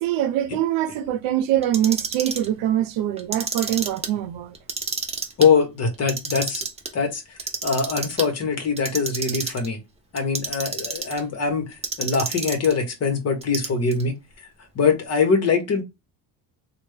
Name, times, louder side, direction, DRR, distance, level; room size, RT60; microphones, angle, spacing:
voice 1, 0.0-4.5, right 12 dB, 85° right, 0.7 m, -23 dB
Clock, 1.6-2.5 3.2-4.1 4.5-5.5 5.9-6.9 7.4-8.3 8.8-9.7 10.2-11.2 11.8-12.7 13.4-14.0, right 5 dB, 15° right, 0.4 m, -29 dB
voice 2, 5.4-6.6 6.9-7.2 7.6-9.8 10.1-11.7 12.0-14.2 14.7-15.8, left 5 dB, 35° left, 1.1 m, -22 dB
3.4 x 2.4 x 3.2 m
cardioid pair, 165°, 42 cm